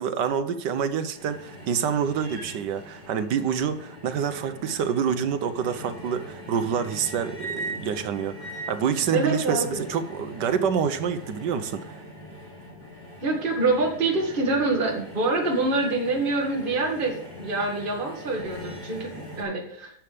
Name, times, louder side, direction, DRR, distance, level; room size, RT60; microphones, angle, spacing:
voice 1, 0.0-12.0, right 7 dB, 70° right, 10 dB, 1.4 m, -27 dB
sound 1, 1.1-19.4, equal, 10° right, 5.5 m, -41 dB
voice 2, 9.1-9.9 13.2-19.9, right 3 dB, 30° right, 0 dB, 2.1 m, -26 dB
11.0 x 7.2 x 5.0 m, 0.70 s
omnidirectional pair, 2.0 m